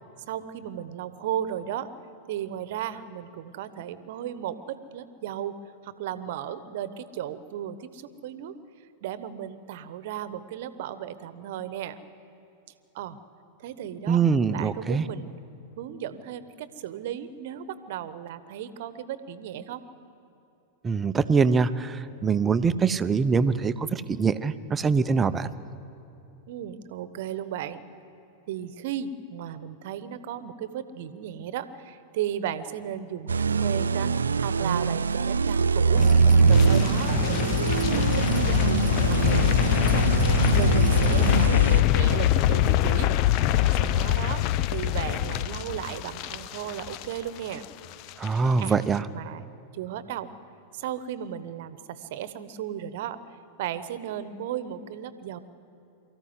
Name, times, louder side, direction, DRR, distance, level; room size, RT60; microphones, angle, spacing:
voice 1, 0.3-1.9 2.3-5.5 5.8-8.5 9.0-12.0 12.9-13.2 13.6-14.2 14.5-15.4 15.8-19.8 26.5-27.8 28.5-36.0 36.4-38.7 39.0-40.2 40.5-43.1 43.8-44.4 44.7-47.7 48.6-48.8 49.1-50.3 50.7-55.4, right 10 dB, 60° right, 13 dB, 1.1 m, -35 dB
voice 2, 14.1-15.1 20.8-25.5 48.2-49.1, right 5 dB, 20° right, 13 dB, 0.8 m, -23 dB
sound 1, 33.3-41.8, right 5 dB, 85° right, 0.4 m, -23 dB
sound 2, 35.9-41.5, left 1 dB, 15° left, 1.5 m, -31 dB
sound 3, 36.5-47.7 47.9-48.3 48.6-48.7, left 13 dB, 45° left, 0.6 m, -24 dB
24.0 x 14.5 x 9.6 m, 2.9 s
figure-of-eight pair, 95°, 0 cm